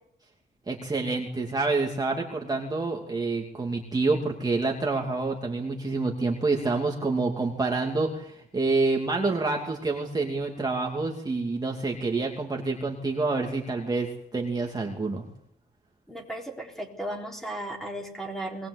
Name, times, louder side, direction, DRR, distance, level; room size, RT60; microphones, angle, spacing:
voice 1, 0.7-15.2, right 3 dB, 20° right, 0 dB, 2.6 m, -27 dB
voice 2, 16.1-18.7, right 1 dB, ahead, 1 dB, 4.0 m, -35 dB
21.5 x 20.0 x 8.2 m, 0.70 s
wide cardioid pair, 145°, 18 cm